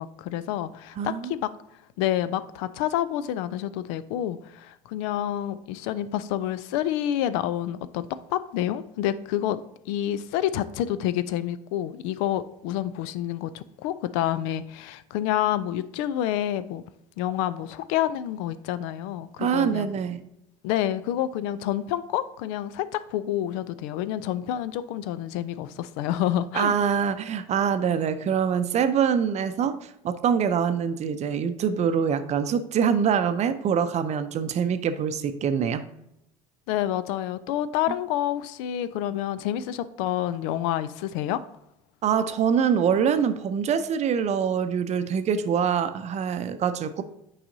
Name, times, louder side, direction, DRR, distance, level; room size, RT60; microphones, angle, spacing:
voice 1, 0.0-1.5 2.0-9.6 9.9-16.8 17.2-20.0 20.6-26.8 36.7-41.4, left 12 dB, 65° left, 15 dB, 0.4 m, -28 dB
voice 2, 1.0-1.4 19.4-20.2 26.5-29.8 30.0-35.9 37.9-38.0 42.0-47.0, right 7 dB, 40° right, 11 dB, 0.6 m, -24 dB
8.5 x 4.8 x 2.7 m, 0.81 s
hypercardioid pair, 70°, 18 cm